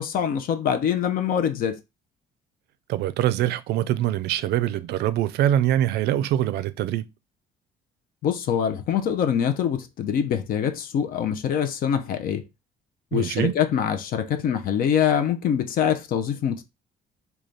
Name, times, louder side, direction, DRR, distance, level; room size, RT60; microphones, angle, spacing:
voice 1, 0.0-1.8 8.2-12.5 13.1-16.6, left 8 dB, 60° left, 0.5 m, -24 dB
voice 2, 2.9-7.1 13.1-13.5, right 12 dB, 75° right, 0.4 m, -24 dB
3.2 x 2.3 x 3.8 m
cardioid pair, 110°, 17 cm